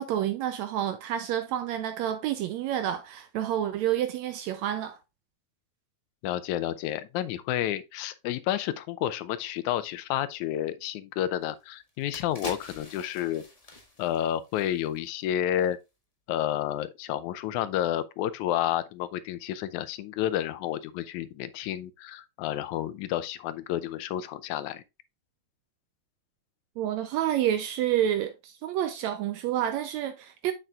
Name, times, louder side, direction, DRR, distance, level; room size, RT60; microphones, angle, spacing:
voice 1, 0.0-5.0 26.8-30.5, right 11 dB, 80° right, 1.7 m, -29 dB
voice 2, 6.2-13.4 14.0-15.8 16.3-24.8, left 12 dB, 80° left, 2.0 m, -30 dB
sound 1, 11.4-11.5 11.9-15.2 15.5-15.7, left 1 dB, 35° left, 0.5 m, -44 dB
7.4 x 6.7 x 2.3 m
omnidirectional pair, 3.5 m